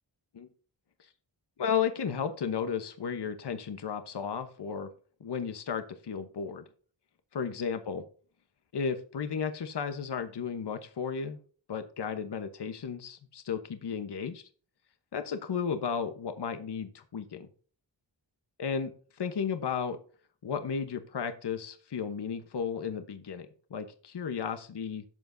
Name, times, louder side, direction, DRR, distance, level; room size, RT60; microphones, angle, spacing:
voice 1, 1.6-4.9 5.2-6.6 7.3-8.0 8.7-11.4 11.7-14.4 15.1-17.5 18.6-18.9 19.2-20.0 20.4-25.0, left 6 dB, 65° left, 8 dB, 1.0 m, -34 dB
12.0 x 8.1 x 2.7 m, 0.42 s
wide cardioid pair, 85°, 44 cm